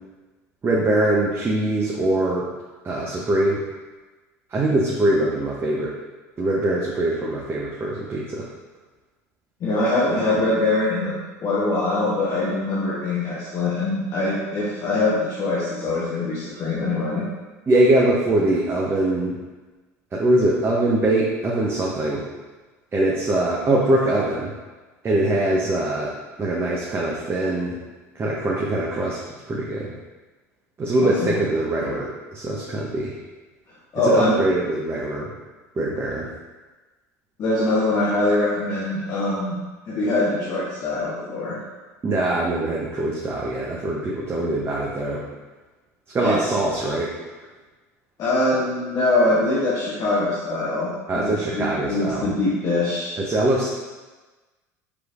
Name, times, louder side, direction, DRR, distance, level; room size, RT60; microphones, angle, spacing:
voice 1, 0.6-2.5 2.8-3.6 4.5-5.9 6.4-8.5 17.7-19.4 20.1-22.2 22.9-24.5 25.0-26.1 26.4-27.8 28.2-29.2 29.5-29.9 30.8-33.2 34.0-35.3 35.8-36.3 42.0-45.2 46.1-47.1 51.1-52.3 53.2-53.7, right 1 dB, 30° right, -4 dB, 0.7 m, -22 dB
voice 2, 9.6-11.2 11.4-17.2 31.2-31.3 33.9-34.4 37.4-39.6 39.9-41.6 46.2-46.4 48.2-53.1, left 2 dB, 45° left, -7 dB, 0.9 m, -23 dB
5.0 x 3.1 x 2.5 m, 1.2 s
hypercardioid pair, 75°, 8 cm